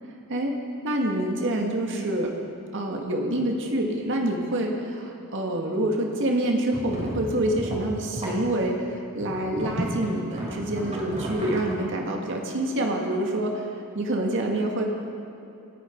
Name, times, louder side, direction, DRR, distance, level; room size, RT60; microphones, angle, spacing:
voice 1, 0.8-2.3 2.7-13.7 13.9-14.8, right 1 dB, 60° right, 1 dB, 2.0 m, -26 dB
sound 1, 6.7-8.4 9.2-11.8, equal, 30° right, 3.8 m, -34 dB
28.0 x 9.6 x 4.6 m, 3.0 s
head